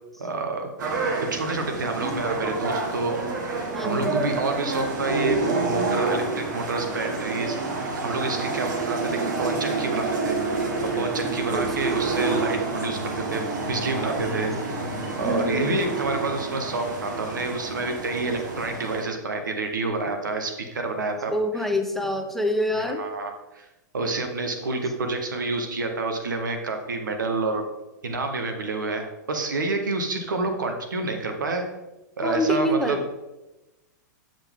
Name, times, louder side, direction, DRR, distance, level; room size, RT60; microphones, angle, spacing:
voice 1, 0.2-0.7 1.3-3.2 3.8-7.6 8.0-13.0 13.3-14.5 15.2-21.7 22.8-23.7 23.9-27.6 28.0-31.7 32.2-33.0, right 3 dB, 90° right, 5 dB, 1.1 m, -28 dB
sound 1, 0.8-19.0, right 3 dB, 75° right, 1.4 m, -28 dB
voice 2, 3.7-4.2 11.5-11.7 15.2-15.9 21.3-23.0 32.2-33.0, equal, ahead, 4 dB, 0.6 m, -26 dB
7.5 x 5.2 x 3.6 m, 1.0 s
hypercardioid pair, 120°, 10 cm